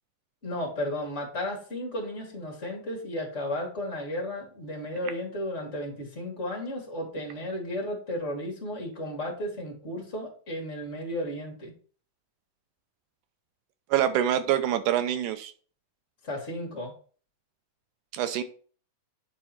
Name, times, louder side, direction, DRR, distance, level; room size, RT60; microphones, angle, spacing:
voice 1, 0.4-11.7 16.2-16.9, left 1 dB, 25° left, -1 dB, 2.1 m, -34 dB
voice 2, 13.9-15.5 18.1-18.4, right 11 dB, 80° right, 9 dB, 2.0 m, -25 dB
9.3 x 3.7 x 4.2 m, 0.42 s
omnidirectional pair, 4.0 m